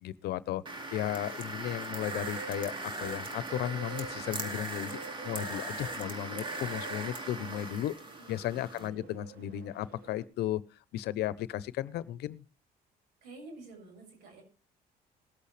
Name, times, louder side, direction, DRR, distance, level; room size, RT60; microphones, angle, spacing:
voice 1, 0.0-0.6 0.9-7.9 8.3-10.6 10.9-12.4, left 12 dB, 75° left, 0.8 m, -35 dB
sound 1, 0.7-8.9, right 2 dB, 30° right, 2.3 m, -39 dB
Bird, 1.9-10.2, right 4 dB, 65° right, 2.1 m, -48 dB
voice 2, 8.0-9.1 13.2-14.4, right 2 dB, 85° right, 7.1 m, -51 dB
20.0 x 8.4 x 3.3 m
cardioid pair, 110°, 17 cm